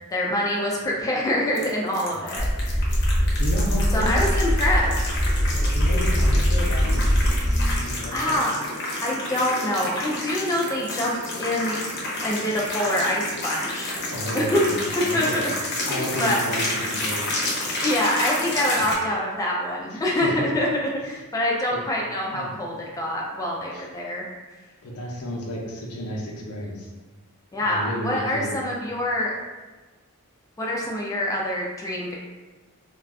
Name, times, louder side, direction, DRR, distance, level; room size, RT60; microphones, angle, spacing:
voice 1, 0.1-2.9 3.9-5.0 8.1-8.5 9.0-11.8 12.2-13.9 14.3-14.6 15.0-15.3 15.9-16.4 17.8-20.7 21.0-24.3 27.5-29.3 30.6-32.2, left 1 dB, 15° left, -3 dB, 0.3 m, -25 dB
sound 1, 1.5-18.9, left 1 dB, 50° left, 0.7 m, -30 dB
sound 2, 2.4-7.8, equal, 40° right, 0.7 m, -22 dB
voice 2, 3.4-4.3 5.5-7.2 7.7-8.4 14.1-15.5 15.9-17.3 18.8-18.9 19.9-20.4 21.7-21.8 22.3-22.6 23.7-23.8 24.8-26.9 27.6-28.6, equal, 90° left, -2 dB, 0.6 m, -32 dB
2.3 x 2.3 x 3.5 m, 1.2 s
head